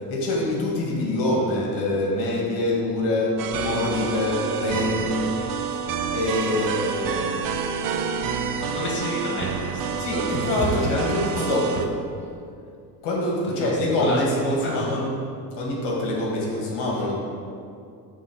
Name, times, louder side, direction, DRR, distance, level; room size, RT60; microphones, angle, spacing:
voice 1, 0.1-5.3 6.1-7.3 8.8-9.0 10.0-11.9 13.0-15.1 15.5-17.2, left 1 dB, 60° left, -2 dB, 2.2 m, -25 dB
sound 1, 3.4-11.9, right 6 dB, 45° right, 0.8 m, -28 dB
voice 2, 6.4-6.8 8.6-10.1 13.6-13.7 14.0-14.9, equal, 25° left, -4 dB, 1.9 m, -32 dB
8.7 x 3.8 x 7.0 m, 2.4 s
supercardioid pair, 90°, 46 cm